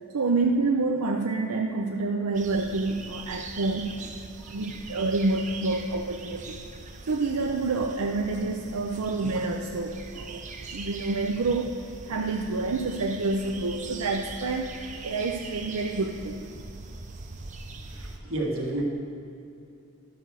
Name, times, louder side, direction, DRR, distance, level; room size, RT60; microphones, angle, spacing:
voice 1, 0.1-4.0 4.5-6.6 7.1-10.4 10.7-11.8 12.1-14.8 15.0-16.5, right 3 dB, 90° right, 2 dB, 0.6 m, -28 dB
sound 1, 2.3-18.2, right 3 dB, 35° right, 0.6 m, -42 dB
voice 2, 4.4-4.8 17.4-17.5 17.8-18.8, right 1 dB, 65° right, -1 dB, 1.7 m, -33 dB
12.0 x 6.9 x 4.7 m, 2.7 s
head